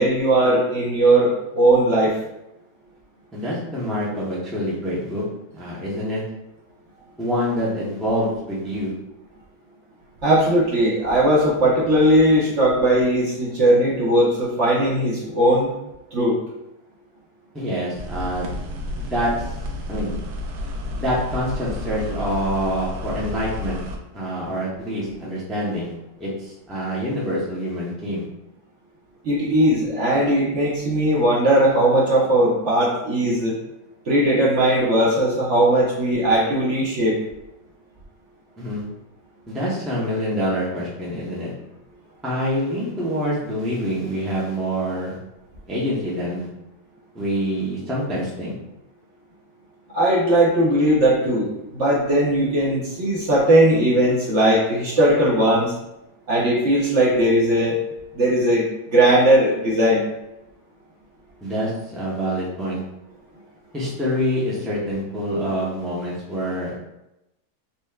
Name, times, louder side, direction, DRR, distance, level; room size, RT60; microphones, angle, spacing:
voice 1, 0.0-2.2 10.2-15.7 16.1-16.4 29.2-33.6 34.1-37.2 49.9-55.7 56.3-57.8 58.1-60.0, right 1 dB, 55° right, -5 dB, 0.9 m, -18 dB
voice 2, 3.3-5.2 5.5-6.2 7.2-8.9 17.5-18.6 19.0-19.3 19.9-20.1 21.0-23.8 24.1-25.9 26.2-28.2 38.6-38.8 39.5-41.5 42.2-45.2 45.7-46.5 47.1-48.5 61.4-62.8 63.7-66.8, equal, ahead, -6 dB, 0.6 m, -26 dB
sound 1, 17.9-24.0, left 1 dB, 75° right, 1.1 m, -31 dB
4.1 x 3.2 x 2.3 m, 0.90 s
omnidirectional pair, 1.8 m